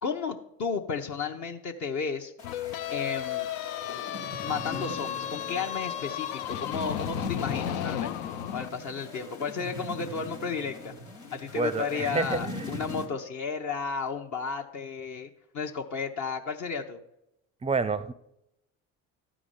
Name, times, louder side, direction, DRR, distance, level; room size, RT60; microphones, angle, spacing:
voice 1, 0.0-2.3 2.9-3.5 4.4-8.2 8.5-10.9 11.3-17.0, left 5 dB, 45° left, 3 dB, 0.9 m, -33 dB
sound 1, 2.4-13.1, left 2 dB, 90° left, 1.6 m, -41 dB
sound 2, 2.4-8.7, left 11 dB, 65° left, 0.6 m, -34 dB
voice 2, 11.6-12.8 17.6-18.1, right 4 dB, 15° right, 17 dB, 0.5 m, -29 dB
12.5 x 5.0 x 5.5 m, 0.84 s
hypercardioid pair, 55°, 40 cm